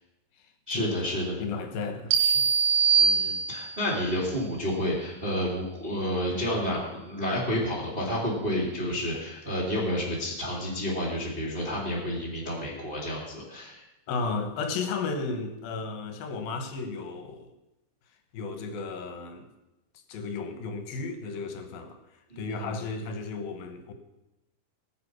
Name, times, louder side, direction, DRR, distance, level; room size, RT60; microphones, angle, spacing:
voice 1, 0.7-1.4 3.0-13.8 22.3-22.7, equal, 15° right, 2.3 m, -30 dB
voice 2, 1.4-2.5 8.9-9.0 14.1-17.5 18.3-19.5 20.1-22.0 22.4-23.9, left 4 dB, 70° left, 2.8 m, -34 dB
sound 1, 2.1-3.9, right 6 dB, 75° right, 3.0 m, -23 dB
19.0 x 7.7 x 6.2 m
omnidirectional pair, 4.8 m